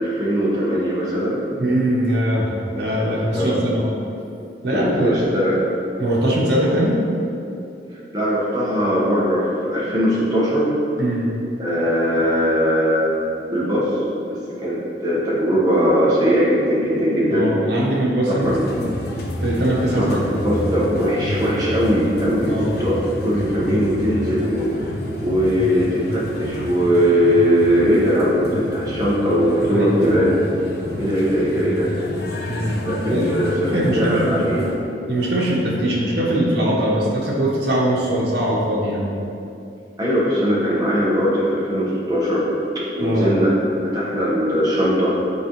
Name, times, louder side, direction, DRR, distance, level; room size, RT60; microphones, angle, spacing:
voice 1, 0.0-1.4 3.3-3.6 4.7-5.6 8.1-10.6 11.6-14.0 14.6-17.5 18.3-18.6 20.1-24.8 25.2-30.6 31.0-31.9 32.8-34.8 40.0-42.6 43.0-43.5 43.8-45.1, equal, 20° right, -7 dB, 1.5 m, -20 dB
voice 2, 1.6-3.9 4.6-5.4 6.0-7.0 11.0-11.3 17.3-18.9 19.4-20.0 22.5-22.7 29.7-30.3 32.5-33.2 33.7-34.4 35.1-39.1 43.0-43.3, right 1 dB, 75° right, -5 dB, 1.4 m, -21 dB
sound 1, 18.4-34.8, left 1 dB, 60° left, 0.8 m, -30 dB
8.5 x 4.3 x 3.3 m, 2.6 s
head